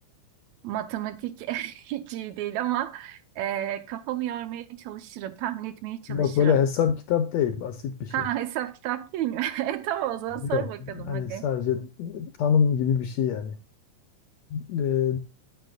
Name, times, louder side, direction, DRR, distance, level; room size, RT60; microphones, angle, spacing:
voice 1, 0.6-6.6 8.1-11.5, right 12 dB, 75° right, 1.9 m, -31 dB
voice 2, 6.1-8.1 10.5-10.7 11.1-13.6 14.5-15.2, left 8 dB, 75° left, 1.7 m, -25 dB
9.7 x 9.1 x 2.3 m
omnidirectional pair, 3.6 m